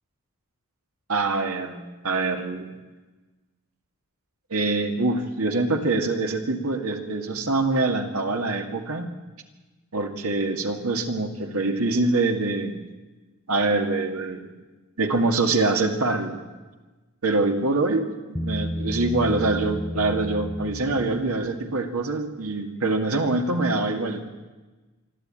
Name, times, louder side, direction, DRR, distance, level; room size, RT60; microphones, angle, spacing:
voice 1, 1.1-2.7 4.5-9.1 9.9-12.8 13.5-14.5 15.0-16.4 17.2-24.3, right 2 dB, 80° right, 4 dB, 2.2 m, -24 dB
Bass guitar, 18.3-21.7, equal, 10° left, 0.7 m, -32 dB
25.0 x 12.5 x 8.9 m, 1.2 s
head